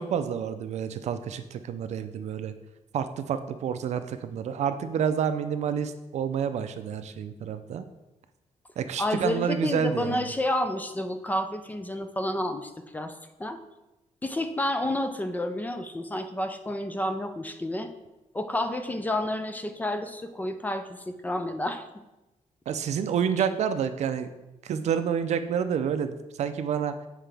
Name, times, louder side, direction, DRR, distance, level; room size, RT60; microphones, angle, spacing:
voice 1, 0.0-2.5 2.9-7.8 8.8-10.3 22.7-24.3 24.6-26.9, right 7 dB, 60° right, 10 dB, 0.5 m, -29 dB
voice 2, 9.0-13.1 13.4-13.6 14.2-17.9 18.3-21.8, left 1 dB, 15° left, 7 dB, 0.4 m, -30 dB
7.7 x 4.8 x 3.4 m, 1.0 s
wide cardioid pair, 165°, 13 cm